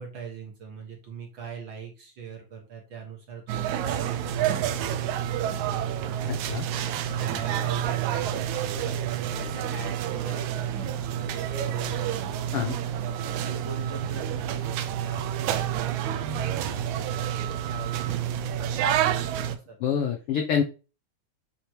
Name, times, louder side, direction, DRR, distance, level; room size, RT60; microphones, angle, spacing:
voice 1, 0.0-6.0 6.4-10.9 11.2-12.4 13.0-17.1 17.4-19.8, right 5 dB, 50° right, 1 dB, 1.6 m, -40 dB
sound 1, 3.5-19.6, right 10 dB, 80° right, 2.0 m, -29 dB
voice 2, 19.8-20.6, left 8 dB, 85° left, 4 dB, 1.2 m, -26 dB
8.3 x 3.0 x 4.4 m, 0.33 s
omnidirectional pair, 3.4 m